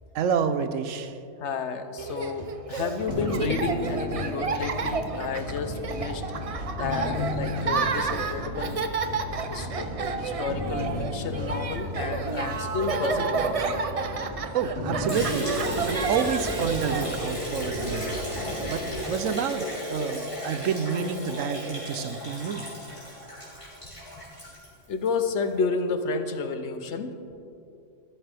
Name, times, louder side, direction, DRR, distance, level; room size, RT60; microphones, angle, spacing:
voice 1, 0.1-1.1 14.5-18.3 18.6-18.8 19.1-22.7, right 7 dB, 85° right, 11 dB, 1.0 m, -29 dB
voice 2, 1.4-6.2 6.7-8.8 9.5-9.9 10.2-13.8 24.9-27.2, left 4 dB, 65° left, 8 dB, 1.0 m, -31 dB
Laughter, 2.0-18.8, right 5 dB, 50° right, 0.4 m, -31 dB
sound 1, 3.1-18.9, left 1 dB, 45° left, 2.8 m, -35 dB
Liquid, 15.1-25.2, equal, 25° left, 3.6 m, -34 dB
13.5 x 13.5 x 3.5 m, 2.6 s
omnidirectional pair, 1.3 m